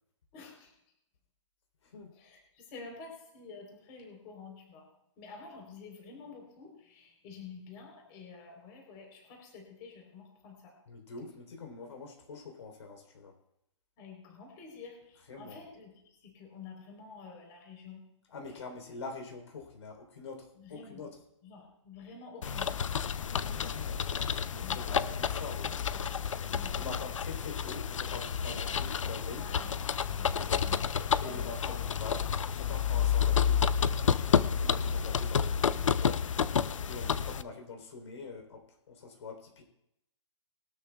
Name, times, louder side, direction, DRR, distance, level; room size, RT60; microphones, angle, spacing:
voice 1, 0.3-0.7 2.2-4.9 5.2-10.7 14.0-15.9 16.2-18.0 18.4-18.6 20.6-21.1 21.4-22.7 24.6-25.6 25.9-26.1 26.5-27.1 28.5-28.9 29.4-29.7 30.2-30.8 31.1-31.7, left 5 dB, 25° left, 0 dB, 3.7 m, -49 dB
voice 2, 1.8-2.1 10.9-13.3 15.3-15.6 18.3-21.2 23.3-24.1 24.5-25.7 26.7-29.5 30.4-30.7 31.2-33.6 34.0-36.3 36.9-39.6, left 4 dB, 65° left, 2 dB, 3.6 m, -45 dB
sound 1, 22.4-37.4, left 7 dB, 80° left, 0.6 m, -30 dB
21.5 x 12.5 x 2.3 m, 0.80 s
hypercardioid pair, 165°, 16 cm